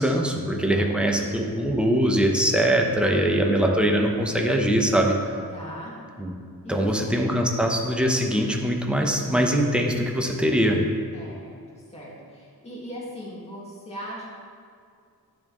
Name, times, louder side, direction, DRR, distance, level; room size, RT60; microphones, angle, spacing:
voice 1, 0.0-5.3 6.2-6.3 6.7-10.8, right 1 dB, 5° right, 1 dB, 0.9 m, -22 dB
voice 2, 0.7-1.4 3.1-3.6 5.5-5.9 6.6-7.1 11.1-14.2, equal, 15° left, -7 dB, 1.9 m, -39 dB
12.0 x 4.4 x 3.1 m, 2.3 s
cardioid pair, 70°, 37 cm